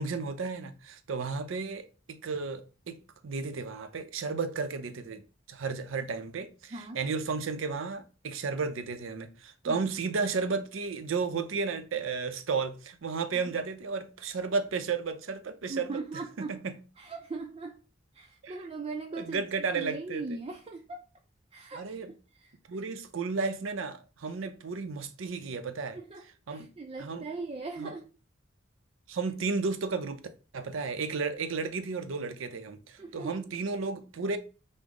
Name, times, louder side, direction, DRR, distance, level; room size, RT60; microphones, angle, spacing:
voice 1, 0.0-3.0 3.2-16.0 16.4-16.8 18.4-18.6 19.2-20.4 21.7-22.1 22.7-26.0 26.5-26.7 27.0-27.3 27.8-27.9 29.1-30.2 30.5-34.4, right 4 dB, 80° right, 0.5 m, -33 dB
voice 2, 6.7-7.0 9.6-9.9 13.4-13.5 15.7-16.6 17.0-17.8 18.1-21.0 21.5-21.8 22.3-22.8 24.3-24.5 25.9-28.1 33.0-33.4, right 3 dB, 30° right, 0.4 m, -40 dB
5.1 x 2.0 x 3.6 m
head